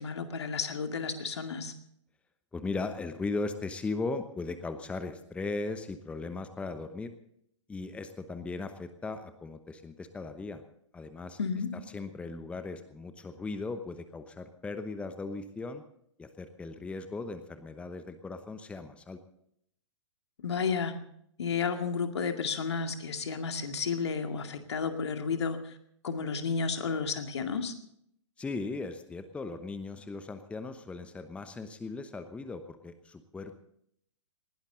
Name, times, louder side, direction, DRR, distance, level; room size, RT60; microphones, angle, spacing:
voice 1, 0.0-1.7 11.4-11.7 20.4-20.9 21.4-25.7 26.0-27.7, left 5 dB, 65° left, 6 dB, 2.2 m, -32 dB
voice 2, 2.5-7.1 7.7-10.6 10.9-11.4 11.7-15.8 16.2-19.2 28.4-33.6, left 3 dB, 10° left, 9 dB, 1.0 m, -38 dB
20.0 x 17.5 x 3.9 m, 0.70 s
figure-of-eight pair, 115°, 15 cm